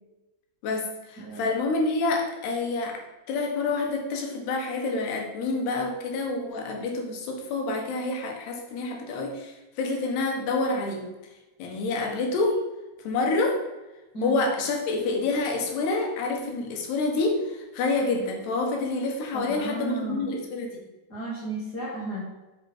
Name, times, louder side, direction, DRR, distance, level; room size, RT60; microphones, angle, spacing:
voice 1, 0.6-3.0 3.3-11.0 11.6-12.6 13.0-13.6 14.2-20.8, left 3 dB, 85° left, 2 dB, 3.5 m, -27 dB
voice 2, 19.3-20.2 21.1-22.2, right 2 dB, 50° left, -4 dB, 1.2 m, -34 dB
8.4 x 7.1 x 4.4 m, 1.1 s
omnidirectional pair, 4.6 m